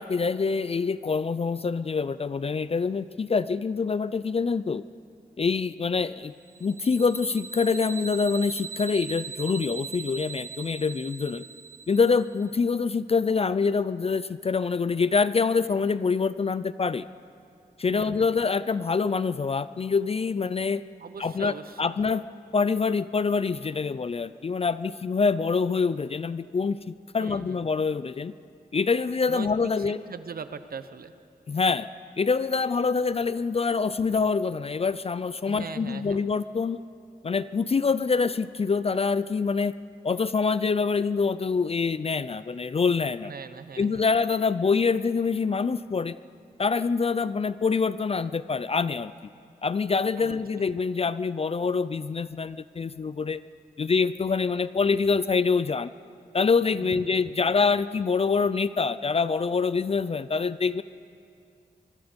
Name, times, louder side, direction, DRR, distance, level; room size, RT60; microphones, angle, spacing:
voice 1, 0.0-4.8 5.4-6.3 6.6-11.4 11.9-17.1 17.8-20.8 21.2-22.2 22.5-28.3 28.7-30.0 31.5-31.9 32.2-36.8 37.2-39.7 40.0-43.3 43.8-46.2 46.6-49.1 49.6-53.4 53.8-55.9 56.3-60.8, left 5 dB, 40° left, 15 dB, 0.4 m, -25 dB
sound 1, 6.5-12.4, right 7 dB, 60° right, 0.5 m, -40 dB
voice 2, 17.9-18.3 21.0-22.0 27.2-27.6 29.3-31.1 35.5-36.2 43.2-44.1 50.2-50.7 56.8-57.3, right 5 dB, 75° right, 11 dB, 1.0 m, -41 dB
24.5 x 23.0 x 5.2 m, 2.5 s
wide cardioid pair, 130°, 15 cm